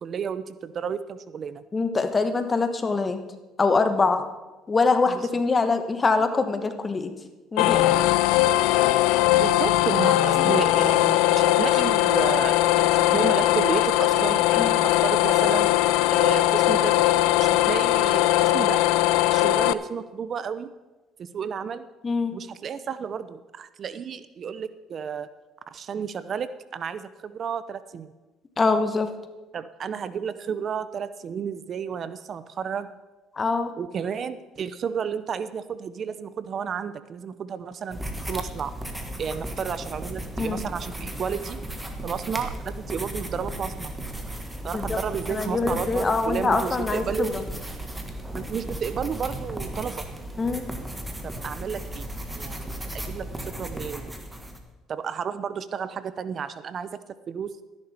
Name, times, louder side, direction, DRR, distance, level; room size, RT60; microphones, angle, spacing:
voice 1, 0.0-1.6 5.1-5.3 9.4-15.7 16.1-17.1 17.4-18.8 19.3-20.7 21.2-21.9 22.3-25.3 25.7-28.1 29.5-32.9 33.8-38.0 38.3-38.7 39.2-41.6 42.0-43.9 44.6-47.4 48.3-50.1 51.2-52.1 52.3-54.1 54.9-57.0 57.3-57.5, right 7 dB, 45° right, 14 dB, 0.5 m, -32 dB
voice 2, 1.7-3.2 3.6-4.3 4.7-7.1 7.5-7.9 10.4-10.6 14.6-14.8 22.0-22.3 28.6-29.1 33.3-33.7 40.4-40.6 44.7-45.0 45.3-47.4 50.4-50.7, left 4 dB, 25° left, 8 dB, 1.2 m, -24 dB
sound 1, 7.6-19.7, left 15 dB, 85° left, 0.4 m, -20 dB
sound 2, 37.9-54.6, right 1 dB, 10° right, 1.6 m, -35 dB
13.0 x 10.5 x 4.3 m, 1.2 s
supercardioid pair, 90°, 0 cm